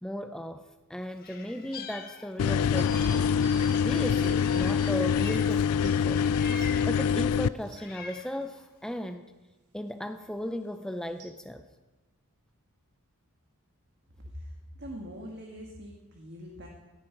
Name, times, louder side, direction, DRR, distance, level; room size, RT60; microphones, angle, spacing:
voice 1, 0.0-3.3 3.8-6.3 6.9-9.2 9.7-11.6, equal, 5° left, 7 dB, 0.5 m, -36 dB
Meow, 1.2-2.6 2.9-5.7 6.1-7.1 7.6-8.4, left 5 dB, 45° left, 1.3 m, -44 dB
sound 1, 2.4-7.5, left 7 dB, 80° left, 0.4 m, -25 dB
sound 2, 2.8-5.0 5.8-6.0 6.6-7.8 11.2-11.3, right 3 dB, 90° right, 2.0 m, -48 dB
voice 2, 14.8-16.7, equal, 55° right, 1 dB, 1.6 m, -42 dB
17.5 x 10.5 x 4.6 m, 1.2 s
head